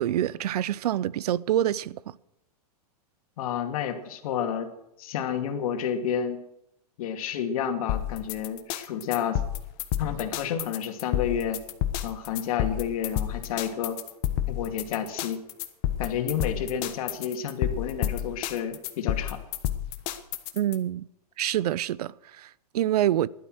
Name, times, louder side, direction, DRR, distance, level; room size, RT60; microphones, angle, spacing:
voice 1, 0.0-2.2 20.6-21.0 21.4-23.3, right 12 dB, 75° right, 0.6 m, -26 dB
voice 2, 3.4-4.7 5.0-6.4 7.0-9.4 10.0-11.6 12.0-14.0 14.5-15.4 16.0-19.4, left 8 dB, 60° left, 2.4 m, -30 dB
sound 1, 7.9-20.8, left 12 dB, 40° left, 1.3 m, -30 dB
16.0 x 12.0 x 6.3 m
supercardioid pair, 150°, 20 cm